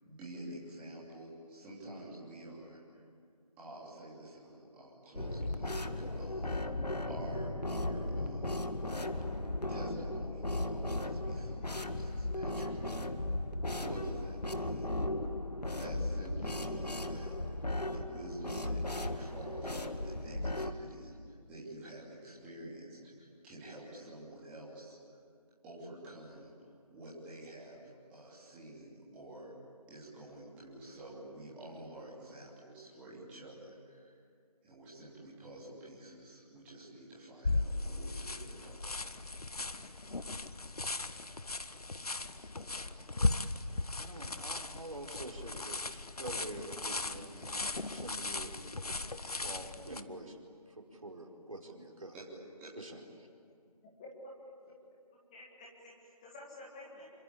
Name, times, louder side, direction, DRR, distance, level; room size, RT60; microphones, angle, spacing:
voice 1, 0.0-3.0 3.6-8.7 9.7-13.1 13.7-14.9 15.8-25.2 25.6-29.5 29.9-34.1 34.6-39.2 52.1-52.2 52.6-52.7, right 1 dB, 5° right, -8 dB, 3.1 m, -49 dB
sound 1, 5.1-20.7, left 1 dB, 85° left, 1.9 m, -36 dB
sound 2, 37.4-50.0, left 2 dB, 70° left, 1.3 m, -37 dB
voice 2, 43.9-47.6 47.9-48.5 48.8-50.4 50.7-52.2 52.8-53.3, right 2 dB, 60° right, 1 dB, 4.7 m, -47 dB
voice 3, 53.8-54.3 55.1-57.2, left 1 dB, 10° left, -4 dB, 1.8 m, -51 dB
27.0 x 25.5 x 8.6 m, 2.4 s
figure-of-eight pair, 165°, 20 cm